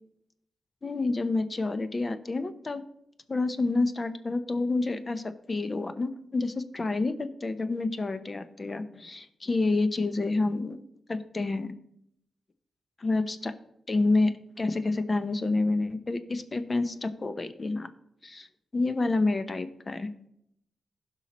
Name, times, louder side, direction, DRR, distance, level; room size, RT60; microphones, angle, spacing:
voice 1, 0.8-2.8 3.3-10.8 11.1-11.7 13.0-13.5 13.9-17.9 18.2-18.5 18.7-20.1, left 3 dB, 40° left, 10 dB, 0.9 m, -28 dB
16.0 x 5.7 x 3.1 m, 0.74 s
cardioid pair, 50°, 0 cm